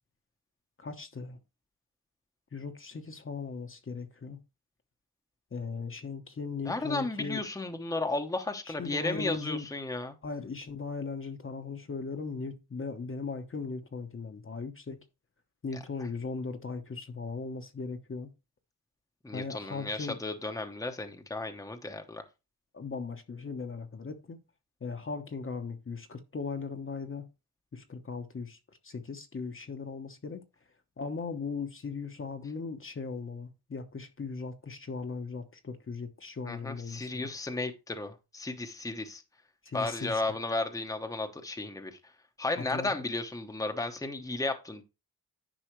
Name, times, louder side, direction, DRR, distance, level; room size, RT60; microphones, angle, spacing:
voice 1, 0.8-1.4 2.5-4.4 5.5-7.5 8.7-9.7 10.2-15.0 15.6-18.3 19.3-20.2 22.7-24.4 24.8-27.2 27.7-30.4 31.0-37.3 39.6-40.2 42.6-42.9, left 4 dB, 35° left, 1.0 m, -38 dB
voice 2, 6.6-10.1 19.2-22.2 36.4-39.2 39.7-42.0 42.4-44.8, left 2 dB, 10° left, 0.9 m, -34 dB
10.0 x 5.6 x 3.1 m
wide cardioid pair, 110°, 38 cm